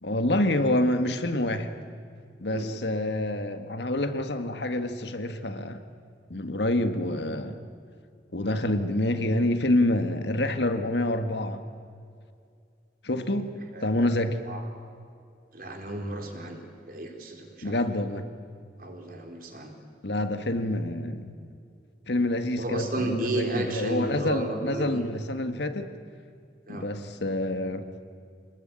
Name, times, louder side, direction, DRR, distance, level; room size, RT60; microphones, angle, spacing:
voice 1, 0.0-1.7 2.4-5.8 6.3-7.6 8.3-11.6 13.0-14.4 17.6-18.3 20.0-21.3 22.1-26.0 26.7-27.9, left 1 dB, 70° left, 8 dB, 1.7 m, -27 dB
voice 2, 13.7-14.1 14.5-14.6 15.5-17.8 18.8-19.7 22.6-25.1 26.7-26.9, right 1 dB, 50° right, 3 dB, 4.0 m, -33 dB
27.0 x 20.0 x 9.1 m, 2.3 s
head